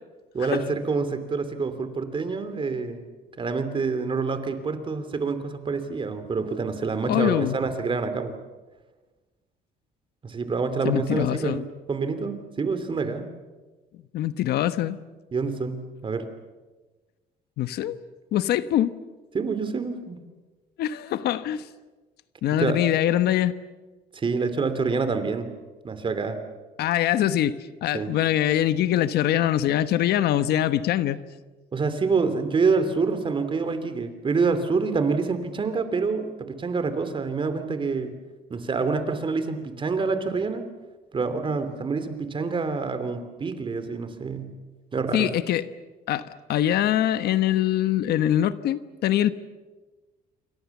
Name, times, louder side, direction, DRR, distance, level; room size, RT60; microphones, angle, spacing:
voice 1, 0.3-3.0 3.4-8.4 10.2-13.3 15.3-16.3 19.3-20.2 22.5-22.8 24.1-25.5 25.8-26.4 27.9-28.1 31.7-38.2 38.5-40.6 41.1-44.5 44.9-45.3, right 4 dB, 30° right, 10 dB, 3.0 m, -27 dB
voice 2, 7.1-7.6 10.8-11.7 14.1-15.0 17.6-18.0 18.3-18.9 20.8-21.6 22.4-23.5 26.8-31.2 45.1-45.6 46.1-49.3, left 12 dB, 75° left, 13 dB, 1.1 m, -23 dB
28.0 x 24.0 x 7.3 m, 1.2 s
cardioid pair, 125°, 17 cm